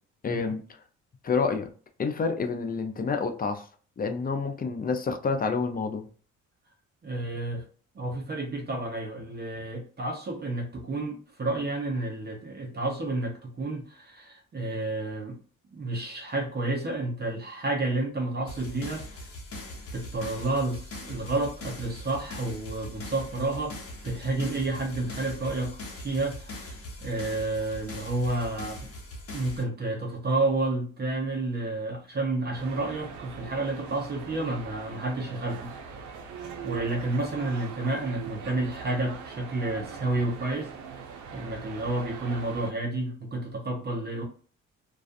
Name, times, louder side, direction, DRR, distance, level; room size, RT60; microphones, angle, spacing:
voice 1, 0.2-0.6 1.2-1.7 2.0-3.6 4.0-6.1, left 4 dB, 30° left, 0.5 m, -28 dB
voice 2, 7.0-7.6 7.9-15.4 15.7-19.3 19.9-28.9 29.3-35.7 36.6-44.2, right 2 dB, 35° right, 0.7 m, -30 dB
sound 1, 18.5-29.6, left 1 dB, 50° left, 0.9 m, -41 dB
sound 2, 32.5-42.7, right 6 dB, 75° right, 0.6 m, -41 dB
2.4 x 2.3 x 2.5 m
cardioid pair, 90°, 30 cm